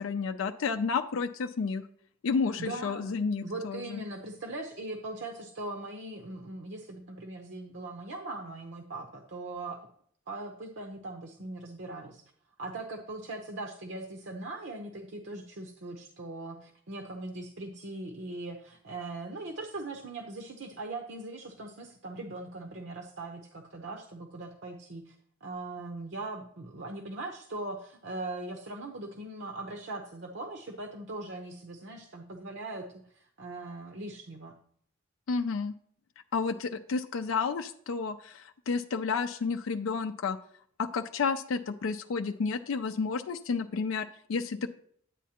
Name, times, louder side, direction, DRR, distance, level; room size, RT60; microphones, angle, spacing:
voice 1, 0.0-1.9 2.2-4.0 35.3-35.7 36.3-40.4 40.8-44.7, left 5 dB, 90° left, 6 dB, 0.4 m, -31 dB
voice 2, 2.6-3.1 3.4-9.8 10.3-12.2 12.6-25.1 25.4-34.5, right 2 dB, 65° right, 4 dB, 0.8 m, -40 dB
9.9 x 8.3 x 2.9 m, 0.63 s
head